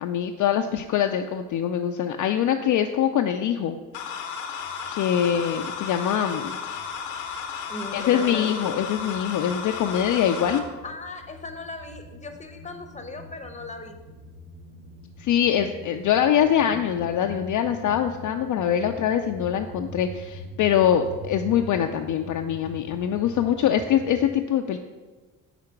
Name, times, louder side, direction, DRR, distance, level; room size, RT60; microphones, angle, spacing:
voice 1, 0.0-3.8 4.8-6.6 7.9-10.6 15.2-24.8, left 9 dB, 50° left, 5 dB, 0.5 m, -23 dB
sound 1, 3.9-10.6, left 6 dB, 85° left, 0.8 m, -34 dB
sound 2, 4.6-6.2 6.5-24.3, equal, 65° right, 2.0 m, -43 dB
voice 2, 7.7-8.5 10.8-14.0, left 3 dB, 20° left, 6 dB, 0.8 m, -38 dB
5.0 x 4.3 x 5.7 m, 1.3 s
hypercardioid pair, 55°, 40 cm